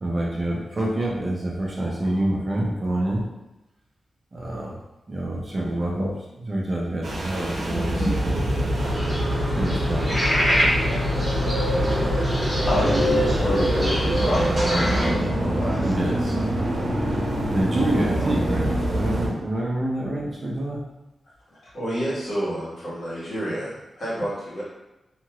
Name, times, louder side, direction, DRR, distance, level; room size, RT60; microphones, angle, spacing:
voice 1, 0.0-3.2 4.3-4.8 5.1-6.1 6.4-8.8 9.5-10.2 11.7-12.4 15.8-16.4 17.5-20.8, right 1 dB, 30° right, -4 dB, 0.5 m, -27 dB
sound 1, 7.0-19.3, equal, 70° right, 0.7 m, -25 dB
sound 2, 8.7-15.1, equal, 10° right, 0.9 m, -26 dB
voice 2, 12.7-15.9, equal, 30° left, -7 dB, 0.8 m, -27 dB
voice 3, 21.7-24.6, right 1 dB, 60° left, -10 dB, 1.4 m, -29 dB
2.8 x 2.4 x 2.9 m, 0.98 s
wide cardioid pair, 175°, 0 cm